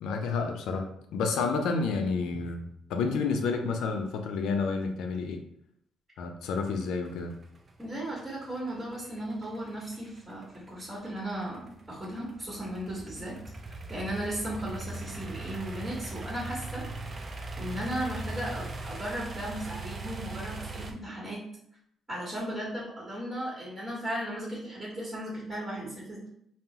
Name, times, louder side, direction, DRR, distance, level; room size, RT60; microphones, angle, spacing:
voice 1, 0.0-0.9 1.1-5.4 6.2-7.3, left 4 dB, 85° left, 5 dB, 0.4 m, -30 dB
sound 1, 6.4-20.9, right 2 dB, 35° right, 0.4 m, -40 dB
voice 2, 7.8-13.4 13.9-16.8 17.6-21.5 22.1-26.3, right 1 dB, 15° right, -7 dB, 1.2 m, -36 dB
3.6 x 2.0 x 2.8 m, 0.70 s
cardioid pair, 90°, 0 cm